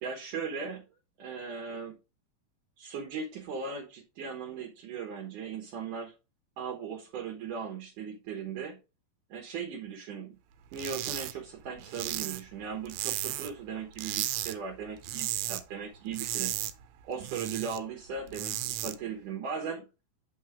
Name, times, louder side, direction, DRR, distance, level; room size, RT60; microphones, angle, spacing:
voice 1, 0.0-0.9 1.2-2.0 2.8-6.1 6.6-8.8 9.3-10.4 10.7-16.5 17.0-19.9, right 6 dB, 70° right, 2.4 m, -38 dB
sound 1, 10.7-11.3 11.6-13.6 13.9-14.5 14.9-15.6 15.9-17.8 18.2-18.9, right 14 dB, 90° right, 2.5 m, -34 dB
7.3 x 5.7 x 3.5 m
omnidirectional pair, 4.3 m